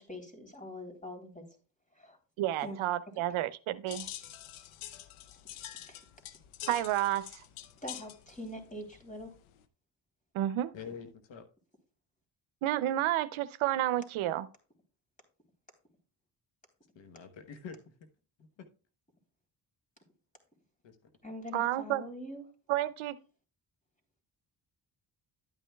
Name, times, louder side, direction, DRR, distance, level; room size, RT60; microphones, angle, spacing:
voice 1, 0.0-1.4 1.9-2.2 2.6-2.8 5.8-6.0 7.8-9.3 21.2-22.4, left 1 dB, 15° left, 3.3 m, -43 dB
voice 2, 2.4-4.1 6.7-7.4 10.3-10.7 12.6-14.5 21.5-22.0 22.7-23.2, right 13 dB, 80° right, 0.6 m, -30 dB
sound 1, 3.9-9.6, left 12 dB, 85° left, 0.7 m, -47 dB
voice 3, 10.7-11.5 16.9-17.9 18.4-18.7 20.8-21.0, left 6 dB, 70° left, 1.2 m, -46 dB
11.0 x 9.1 x 2.3 m
supercardioid pair, 55°, 47 cm